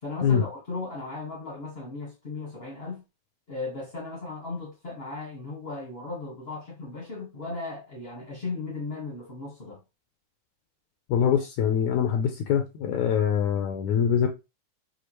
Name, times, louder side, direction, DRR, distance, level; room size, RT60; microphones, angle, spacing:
voice 1, 0.0-3.0 3.5-9.8, left 3 dB, 40° left, 0.9 m, -36 dB
voice 2, 11.1-14.3, left 8 dB, 75° left, 1.8 m, -24 dB
6.4 x 2.4 x 3.0 m
omnidirectional pair, 3.5 m